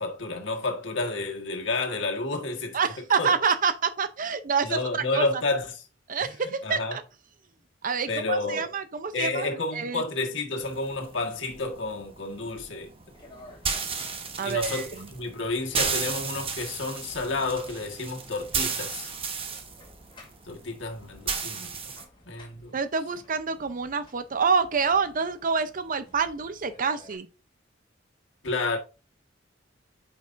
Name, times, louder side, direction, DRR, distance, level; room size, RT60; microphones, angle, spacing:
voice 1, 0.0-2.8 3.2-3.3 4.6-5.8 6.2-6.3 6.6-7.0 8.1-8.7 9.1-12.9 14.4-19.1 20.4-21.7 22.3-22.8 28.4-28.8, left 3 dB, 70° left, 1.5 m, -30 dB
voice 2, 2.7-5.3 6.1-7.0 7.8-10.0 14.4-15.1 22.7-27.3, right 5 dB, 45° right, 0.6 m, -27 dB
sound 1, 10.6-22.0, right 5 dB, 30° right, 1.0 m, -34 dB
sound 2, 13.1-27.2, left 1 dB, 25° left, 2.4 m, -55 dB
9.0 x 5.3 x 2.6 m
head